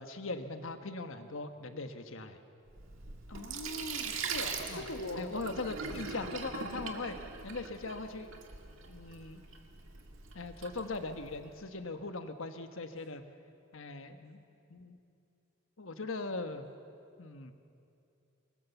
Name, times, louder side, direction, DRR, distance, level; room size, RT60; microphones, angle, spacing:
voice 1, 0.0-2.4 4.7-4.8 5.2-7.2 7.4-8.3 8.9-9.4 10.3-13.2 13.7-14.4 14.7-15.0 15.8-16.6 17.2-17.5, left 3 dB, 65° left, 8 dB, 1.3 m, -40 dB
Sink (filling or washing), 2.7-11.5, right 5 dB, 65° right, 2.0 m, -42 dB
voice 2, 3.3-5.4 5.9-6.4, left 1 dB, 80° left, 5 dB, 2.0 m, -42 dB
24.5 x 20.5 x 7.0 m, 2.7 s
head